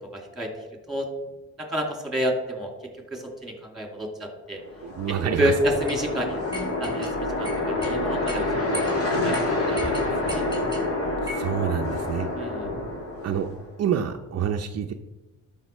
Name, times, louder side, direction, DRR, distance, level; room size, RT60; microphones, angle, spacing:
voice 1, 0.1-0.5 0.9-1.1 1.7-2.7 3.1-4.6 5.4-6.4 6.8-8.8 9.1-10.0 10.3-10.4 12.4-12.7, equal, ahead, 2 dB, 2.4 m, -29 dB
sound 1, 4.7-13.7, left 2 dB, 50° left, 2.4 m, -27 dB
voice 2, 4.8-5.5 11.2-12.3 13.2-13.5 13.8-14.9, right 9 dB, 55° right, 4 dB, 0.7 m, -27 dB
sound 2, 5.9-6.0 6.5-7.1 7.4-8.0 8.3-8.4 8.7-9.0 9.3-9.4 9.8-10.8 11.3-11.5, equal, 15° left, 3.6 m, -36 dB
12.0 x 5.7 x 4.4 m, 1.1 s
cardioid pair, 90°, 30 cm